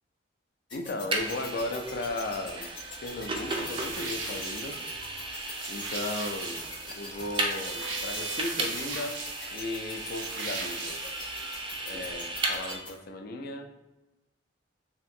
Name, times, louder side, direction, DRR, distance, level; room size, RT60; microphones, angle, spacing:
voice 1, 0.7-2.7 3.0-4.8 5.7-6.6 7.0-9.2 9.5-11.0 11.9-13.7, left 2 dB, 55° left, 6 dB, 0.4 m, -36 dB
sound 1, 0.7-12.9, left 3 dB, 30° left, 0.7 m, -43 dB
Vehicle, 1.1-12.8, right 2 dB, 25° right, 0.3 m, -35 dB
sound 2, 3.5-11.6, right 4 dB, 80° right, 0.6 m, -40 dB
2.9 x 2.5 x 2.6 m, 1.0 s
head